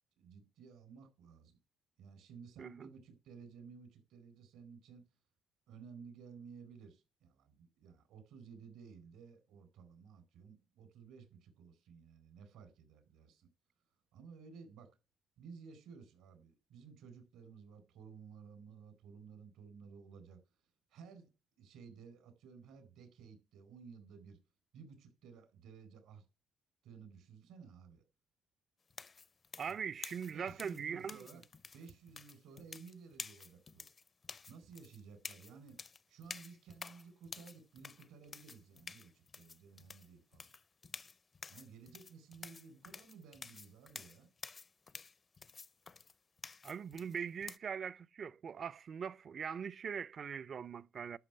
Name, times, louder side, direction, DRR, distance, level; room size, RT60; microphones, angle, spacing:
voice 1, 0.2-1.6 2.0-5.1 5.7-13.5 14.1-15.0 15.4-20.4 20.9-21.3 21.6-24.4 24.7-26.2 26.8-28.0 29.7-29.8 30.3-31.4 31.7-33.9 34.5-40.5 41.5-44.3, right 5 dB, 90° right, 4.3 m, -55 dB
sound 1, 28.9-47.6, left 5 dB, 40° left, 0.6 m, -51 dB
voice 2, 29.6-31.3 46.6-51.2, right 7 dB, 50° right, 0.5 m, -41 dB
11.5 x 6.0 x 7.9 m
cardioid pair, 90°, 0 cm